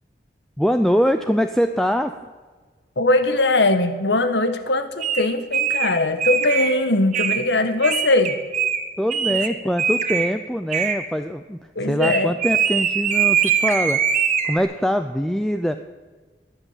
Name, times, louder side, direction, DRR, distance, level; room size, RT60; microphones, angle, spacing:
voice 1, 0.6-2.1 9.0-11.6 11.9-14.0 14.4-15.8, equal, 5° left, 8 dB, 0.4 m, -23 dB
voice 2, 3.0-8.4 11.7-12.4, left 2 dB, 80° left, 10 dB, 1.4 m, -20 dB
sound 1, 5.0-5.2 5.5-5.9 6.2-6.7 7.1-7.4 7.8-8.8 9.1-9.5 9.8-10.3 10.7-11.0 12.0-14.6, right 7 dB, 40° right, 1.3 m, -22 dB
21.0 x 8.2 x 7.4 m, 1.4 s
head